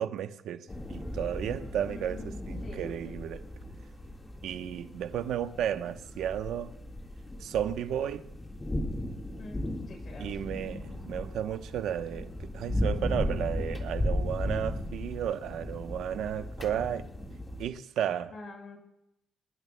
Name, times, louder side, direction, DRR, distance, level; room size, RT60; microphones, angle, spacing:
voice 1, 0.0-3.4 4.4-6.8 7.4-8.3 10.2-17.1 17.6-18.3, right 10 dB, 75° right, 0.9 m, -33 dB
sound 1, 0.7-17.7, left 1 dB, 20° left, 1.7 m, -36 dB
voice 2, 1.9-2.8 9.3-9.6 9.9-10.3 18.3-18.8, left 2 dB, 50° left, 5.8 m, -46 dB
26.0 x 20.0 x 2.2 m
cardioid pair, 105°, 0 cm